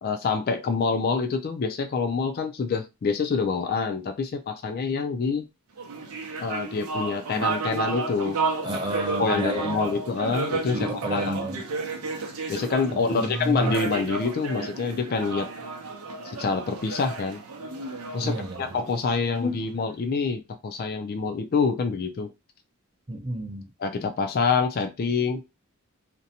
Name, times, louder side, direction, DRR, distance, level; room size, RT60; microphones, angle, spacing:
voice 1, 0.0-5.5 6.4-8.4 9.2-11.4 12.5-15.5 16.2-17.4 18.1-22.3 23.8-25.5, left 4 dB, 45° left, 0.3 m, -26 dB
sound 1, 5.8-19.5, right 4 dB, 90° right, 0.6 m, -32 dB
voice 2, 8.6-10.0 10.7-11.6 12.9-13.7 18.2-18.7 23.1-23.6, right 1 dB, 20° right, 0.5 m, -30 dB
2.5 x 2.1 x 2.7 m
head